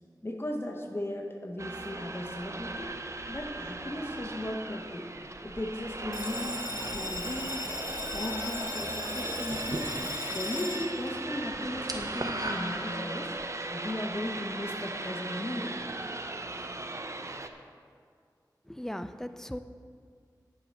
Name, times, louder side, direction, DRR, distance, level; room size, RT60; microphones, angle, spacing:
voice 1, 0.2-3.0 3.3-5.1 5.4-7.6 8.1-9.9 10.3-13.3 13.7-15.8, left 1 dB, 30° left, 2 dB, 0.9 m, -36 dB
sound 1, 1.6-17.5, right 2 dB, 40° right, 0.6 m, -38 dB
Bell, 6.1-13.1, left 2 dB, 65° left, 1.2 m, -38 dB
sound 2, 9.5-10.5 10.8-11.1 11.4-13.5, right 2 dB, 60° right, 1.0 m, -37 dB
voice 2, 18.7-19.6, left 1 dB, 5° left, 10 dB, 0.4 m, -38 dB
9.8 x 5.2 x 7.3 m, 2.1 s
wide cardioid pair, 60°, 7 cm